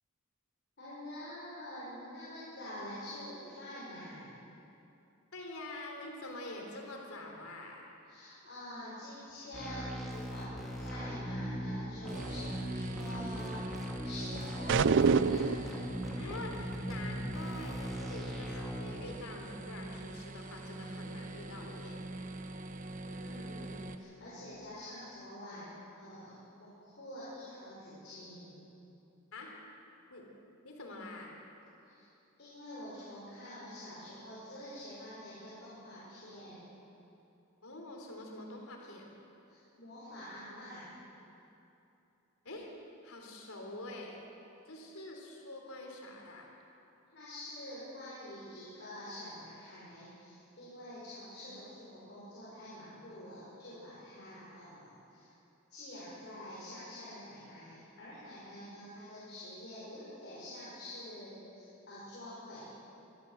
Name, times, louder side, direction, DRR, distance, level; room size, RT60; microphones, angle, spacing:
voice 1, 0.8-4.3 8.0-13.6 14.0-15.8 23.0-28.6 31.8-32.0 32.4-36.6 39.5-40.9 47.1-55.3 55.7-62.7, left 1 dB, 55° left, -10 dB, 6.3 m, -47 dB
voice 2, 5.3-7.9 16.2-22.0 29.3-29.6 30.1-30.3 30.6-31.4 37.6-39.1 42.4-42.7 43.0-44.2 44.7-46.5, left 2 dB, 85° left, 1 dB, 3.7 m, -46 dB
sound 1, 9.5-18.8, equal, ahead, 3.0 m, -39 dB
sound 2, 12.0-23.9, right 2 dB, 40° right, 1.1 m, -43 dB
sound 3, 14.7-15.7, right 5 dB, 60° right, 0.5 m, -25 dB
24.0 x 13.5 x 7.9 m, 2.9 s
head